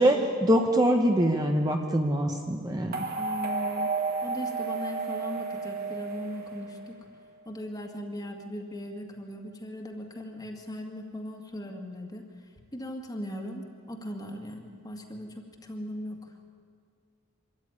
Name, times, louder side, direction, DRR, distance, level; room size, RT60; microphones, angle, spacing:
voice 1, 0.0-3.0, right 1 dB, 20° right, 3 dB, 1.1 m, -24 dB
sound 1, 2.9-7.1, right 4 dB, 45° right, 2.2 m, -32 dB
voice 2, 3.2-3.9 4.2-7.0 7.5-12.2 12.7-16.2, equal, 20° left, 3 dB, 2.1 m, -38 dB
24.0 x 14.0 x 9.7 m, 2.1 s
head